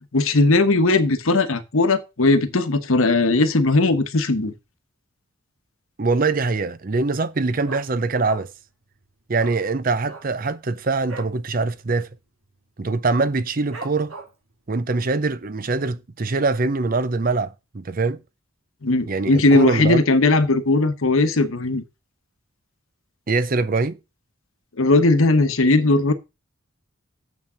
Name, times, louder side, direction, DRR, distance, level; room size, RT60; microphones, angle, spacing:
voice 1, 0.1-4.5 18.8-21.8 24.8-26.1, left 2 dB, 70° left, 1.0 m, -18 dB
voice 2, 6.0-8.5 9.3-12.1 12.8-14.1 14.7-18.2 19.1-20.0 23.3-24.0, right 3 dB, 40° right, 0.6 m, -23 dB
Dog, 6.2-6.6 6.9-7.0 7.3-8.7 9.0-9.1 9.3-9.6 10.0-11.4 11.8-11.9 12.2-12.6 13.0-13.1 13.7-14.5 15.0-15.1, right 3 dB, 70° right, 3.1 m, -39 dB
7.2 x 6.2 x 5.6 m
head